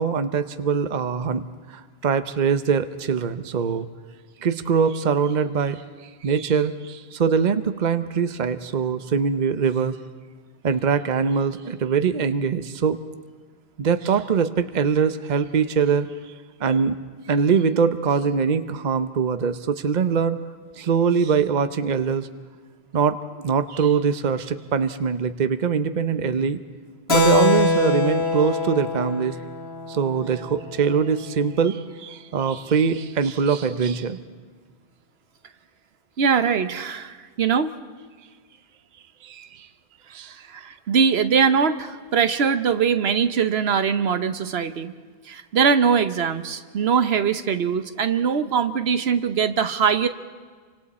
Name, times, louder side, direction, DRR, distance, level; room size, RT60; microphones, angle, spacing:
voice 1, 0.0-3.9 4.4-5.8 6.2-10.0 10.6-13.0 13.8-16.3 16.6-17.0 17.3-20.4 20.8-22.3 22.9-26.6 27.1-29.4 29.9-34.2 39.2-39.7 40.1-40.3, right 6 dB, 50° right, 10 dB, 0.9 m, -23 dB
Keyboard (musical), 27.1-31.2, left 2 dB, 85° left, 1.9 m, -23 dB
voice 2, 36.2-37.7 40.5-44.9 45.3-50.1, right 6 dB, 75° right, 10 dB, 1.1 m, -22 dB
29.5 x 25.0 x 4.3 m, 1.5 s
omnidirectional pair, 1.1 m